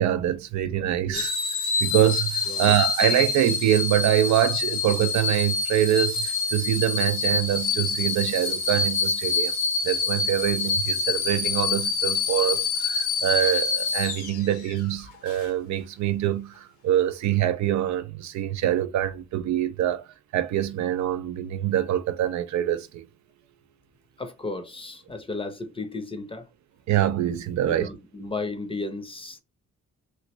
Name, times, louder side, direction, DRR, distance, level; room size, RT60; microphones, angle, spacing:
voice 1, 0.0-1.3 1.8-9.5 9.8-23.0 26.9-27.9, right 12 dB, 65° right, 0.5 m, -25 dB
sound 1, 1.1-14.8 15.3-15.5, left 4 dB, 85° left, 1.2 m, -26 dB
voice 2, 24.2-26.5 27.7-29.4, left 3 dB, 20° left, 0.6 m, -34 dB
3.1 x 2.5 x 2.9 m
cardioid pair, 90°, 30 cm